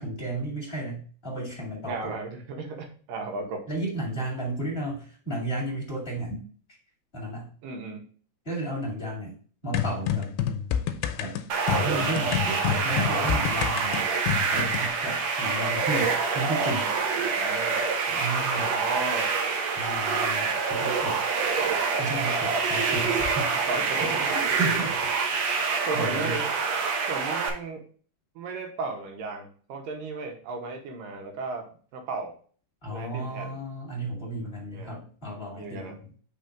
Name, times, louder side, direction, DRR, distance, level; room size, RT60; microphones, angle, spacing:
voice 1, 0.0-2.2 3.7-6.4 7.1-7.5 8.4-9.4 9.6-10.3 11.2-11.4 11.7-14.1 14.5-16.9 18.1-18.7 19.7-21.2 22.0-23.6 24.0-25.0 25.3-26.4 32.8-36.1, right 1 dB, 20° left, -4 dB, 2.3 m, -33 dB
voice 2, 1.8-3.7 7.6-8.0 17.2-17.8 18.5-19.3 23.7-24.4 25.9-26.5 27.1-27.9 28.4-32.4 32.9-33.6 34.7-35.0 35.6-36.0, right 3 dB, 70° right, 3 dB, 2.4 m, -35 dB
sound 1, 9.7-14.9, left 9 dB, 85° left, 2.5 m, -28 dB
sound 2, 11.5-27.5, right 5 dB, 90° right, 1.5 m, -26 dB
5.7 x 3.7 x 5.0 m, 0.43 s
omnidirectional pair, 4.4 m